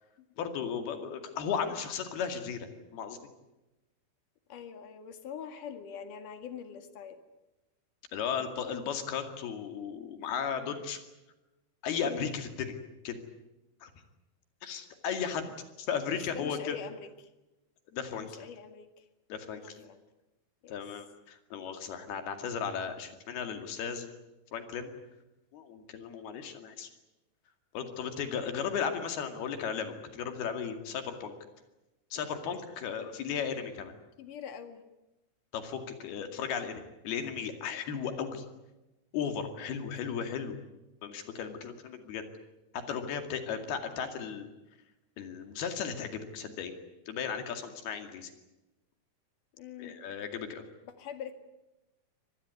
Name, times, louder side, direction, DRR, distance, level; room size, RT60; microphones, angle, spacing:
voice 1, 0.4-2.7 2.9-3.2 8.1-11.0 11.8-12.8 13.0-13.2 13.8-13.9 14.6-15.5 15.8-16.8 17.9-18.3 19.3-19.9 20.7-24.1 24.5-24.9 25.5-26.9 27.7-31.3 32.1-34.0 35.5-38.5 39.1-40.6 41.0-42.3 42.9-44.5 45.2-46.7 47.1-48.3 49.8-50.6, left 7 dB, 75° left, 7 dB, 4.3 m, -35 dB
voice 2, 4.5-7.2 12.0-12.4 16.3-17.3 18.1-19.1 19.6-20.0 20.6-20.8 34.2-34.8 39.7-39.8 49.5-50.0 50.8-51.3, left 8 dB, 60° left, 8 dB, 3.2 m, -44 dB
25.5 x 19.5 x 9.6 m, 0.99 s
omnidirectional pair, 4.5 m